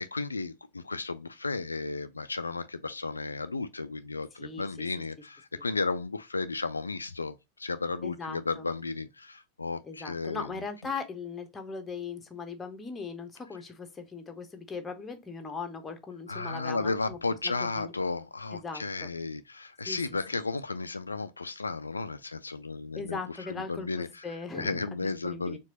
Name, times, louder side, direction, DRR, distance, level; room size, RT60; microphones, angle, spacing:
voice 1, 0.0-10.5 16.3-24.2 24.5-25.6, left 3 dB, 80° left, 0.3 m, -34 dB
voice 2, 8.0-8.7 9.8-17.2 17.6-17.9 18.5-19.1 19.8-20.0 23.0-24.9 25.2-25.6, left 4 dB, 15° left, 0.9 m, -39 dB
4.5 x 2.9 x 2.8 m
figure-of-eight pair, 90°, 0 cm